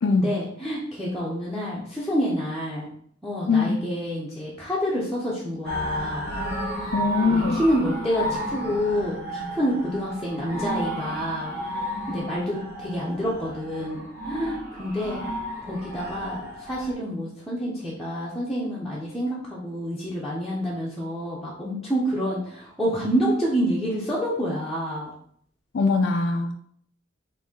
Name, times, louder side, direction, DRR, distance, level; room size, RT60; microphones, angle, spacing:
voice 1, 0.1-2.9 3.2-6.3 7.3-15.3 15.6-25.1, equal, ahead, -8 dB, 0.7 m, -28 dB
voice 2, 3.5-3.8 6.9-7.6 25.7-26.5, left 4 dB, 60° left, 4 dB, 0.4 m, -22 dB
sound 1, 5.6-16.9, equal, 50° right, 1.3 m, -32 dB
4.1 x 2.7 x 3.6 m, 0.62 s
head